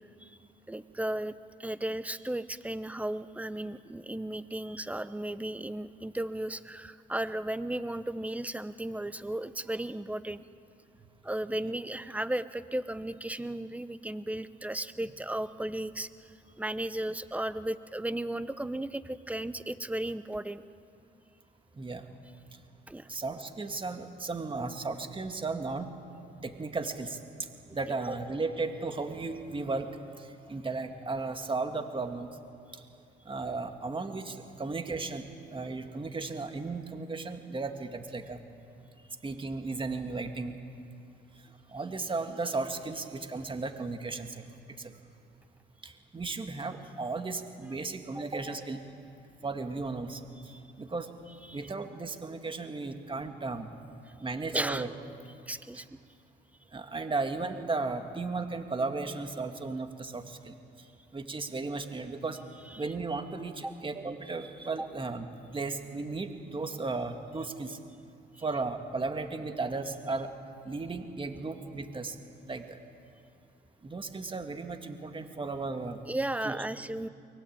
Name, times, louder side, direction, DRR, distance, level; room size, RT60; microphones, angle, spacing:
voice 1, 0.7-10.4 11.2-16.1 16.6-20.6 22.9-23.1 27.9-28.0 48.1-48.2 50.5-50.6 51.5-51.6 54.1-54.2 54.5-54.9 55.5-55.8 62.7-62.8 63.6-63.7 64.8-64.9 76.1-77.1, right 1 dB, 5° right, 13 dB, 0.9 m, -35 dB
voice 2, 23.1-25.9 26.4-27.2 27.7-29.9 30.2-32.3 32.7-32.8 33.3-35.3 35.5-38.4 39.2-40.5 41.7-44.4 44.8-44.9 45.8-48.8 49.4-50.2 50.8-51.1 51.5-53.7 54.2-54.9 55.7-55.8 56.7-60.5 61.1-62.4 62.8-67.8 68.4-70.3 70.7-72.2 72.5-72.8 73.8-76.0 76.4-76.6, right 3 dB, 25° right, 6 dB, 2.0 m, -35 dB
23.5 x 21.0 x 8.8 m, 2.6 s
cardioid pair, 90°, 20 cm